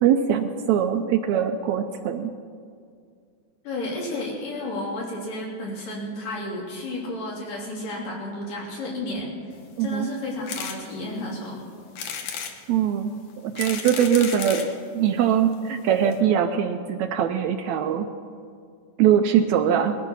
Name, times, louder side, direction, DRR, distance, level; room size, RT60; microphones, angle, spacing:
voice 1, 0.0-2.3 9.8-10.1 12.7-13.1 13.4-18.1 19.0-20.0, right 9 dB, 80° right, 7 dB, 1.7 m, -22 dB
voice 2, 3.6-9.3 9.8-11.6, left 1 dB, 85° left, -3 dB, 4.7 m, -32 dB
sound 1, 10.5-10.8 11.3-11.4 12.0-12.6 13.3-14.7 15.5-15.6 15.8-15.9 16.1-16.2, left 7 dB, 70° left, 2.5 m, -33 dB
20.5 x 12.5 x 5.6 m, 2.2 s
omnidirectional pair, 3.7 m